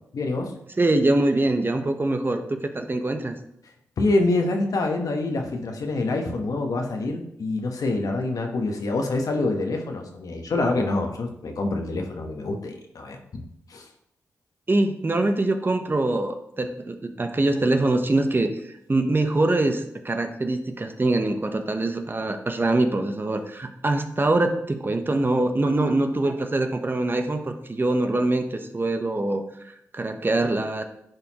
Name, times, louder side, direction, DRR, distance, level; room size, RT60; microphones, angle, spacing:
voice 1, 0.1-0.5 4.0-13.4 13.7-13.9, left 2 dB, 70° left, 3 dB, 1.1 m, -26 dB
voice 2, 0.8-3.3 14.7-18.5 18.9-30.8, right 2 dB, 35° right, 6 dB, 0.9 m, -24 dB
11.0 x 4.2 x 3.0 m, 0.77 s
supercardioid pair, 45°, 6 cm